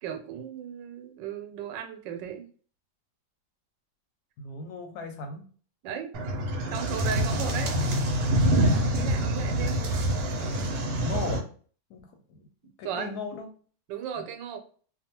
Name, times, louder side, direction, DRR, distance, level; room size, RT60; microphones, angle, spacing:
voice 1, 0.0-2.5 5.8-6.1 6.7-7.7 8.9-9.8 10.2-10.3 12.8-13.1 13.9-14.6, right 8 dB, 85° right, 6 dB, 1.2 m, -36 dB
voice 2, 4.4-5.5 11.0-11.5 11.9-12.0 12.3-12.5 12.8-13.5, left 3 dB, 70° left, 4 dB, 1.0 m, -36 dB
sound 1, 6.1-11.4, right 1 dB, 65° right, 1.0 m, -26 dB
2.7 x 2.2 x 2.8 m, 0.42 s
omnidirectional pair, 1.9 m